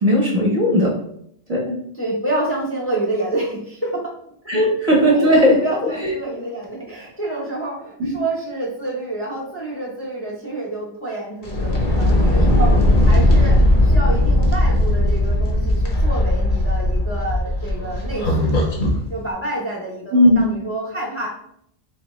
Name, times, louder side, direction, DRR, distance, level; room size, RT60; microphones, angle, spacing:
voice 1, 0.0-1.0 1.5-1.8 4.5-5.6 8.0-8.1 20.1-20.5, equal, 40° right, -3 dB, 0.9 m, -16 dB
voice 2, 1.9-4.1 4.5-4.7 5.1-5.3 5.6-12.8 13.1-18.7 19.1-21.3, right 2 dB, 15° left, -4 dB, 0.7 m, -28 dB
sound 1, 11.4-19.0, left 1 dB, 50° left, 0.9 m, -17 dB
3.9 x 2.9 x 3.0 m, 0.70 s
omnidirectional pair, 1.1 m